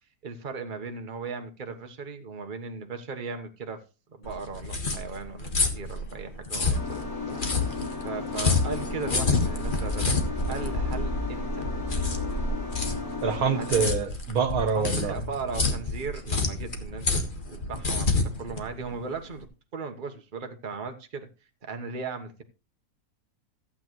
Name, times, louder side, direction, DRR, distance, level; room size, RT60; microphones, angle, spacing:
voice 1, 0.2-3.8 4.2-7.0 8.0-11.7 13.5-13.9 14.6-17.2 17.5-19.5 19.7-21.3 21.6-22.4, right 4 dB, 35° right, 1.3 m, -37 dB
sound 1, 4.2-19.4, left 3 dB, 35° left, 1.6 m, -29 dB
sound 2, 6.7-13.9, left 2 dB, 75° left, 5.3 m, -32 dB
voice 2, 13.2-15.1, right 6 dB, 80° right, 1.7 m, -26 dB
14.5 x 8.6 x 3.1 m
omnidirectional pair, 1.6 m